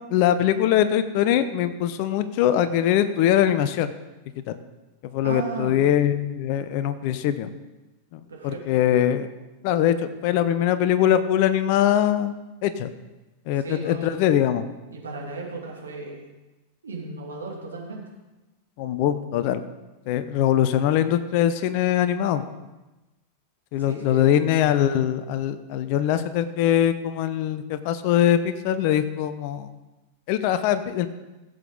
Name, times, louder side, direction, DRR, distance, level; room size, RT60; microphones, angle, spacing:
voice 1, 0.1-3.9 4.5-4.6 5.0-7.5 8.1-9.3 9.6-12.3 12.6-12.9 13.5-14.6 18.8-19.6 20.1-22.4 23.7-29.7 30.3-31.1, left 10 dB, 45° left, 12 dB, 0.7 m, -22 dB
voice 2, 5.2-5.8 8.3-8.8 13.6-14.2 14.9-16.2 16.8-18.0 23.8-24.3, right 3 dB, 70° right, -1 dB, 2.5 m, -35 dB
16.5 x 7.9 x 3.8 m, 1.1 s
figure-of-eight pair, 90°, 0 cm